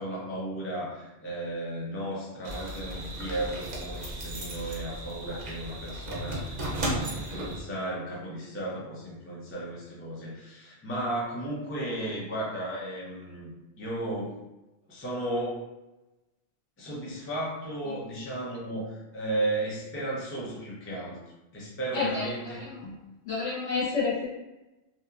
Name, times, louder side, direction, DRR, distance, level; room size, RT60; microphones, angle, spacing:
voice 1, 0.0-14.3 14.9-15.6 16.8-21.2 21.5-23.0, right 1 dB, 20° left, -5 dB, 0.4 m, -34 dB
sound 1, 2.4-7.6, right 1 dB, 50° right, 0.5 m, -35 dB
voice 2, 21.9-22.3 22.6-22.7 23.2-24.3, left 4 dB, 70° left, -8 dB, 1.3 m, -28 dB
2.7 x 2.4 x 2.4 m, 1.0 s
omnidirectional pair, 1.2 m